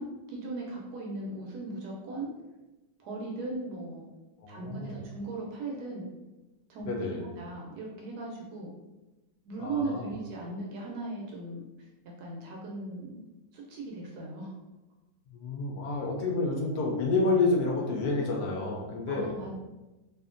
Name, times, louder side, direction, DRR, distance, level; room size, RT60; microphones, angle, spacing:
voice 1, 0.0-2.3 3.0-4.1 4.5-6.1 6.7-8.7 9.5-11.9 12.2-13.2 13.5-14.5 19.1-19.5, right 2 dB, 70° right, -2 dB, 1.0 m, -38 dB
voice 2, 4.4-5.0 6.9-7.2 9.6-10.1 15.3-19.3, left 3 dB, 70° left, -1 dB, 0.9 m, -29 dB
2.8 x 2.4 x 2.4 m, 1.1 s
omnidirectional pair, 2.0 m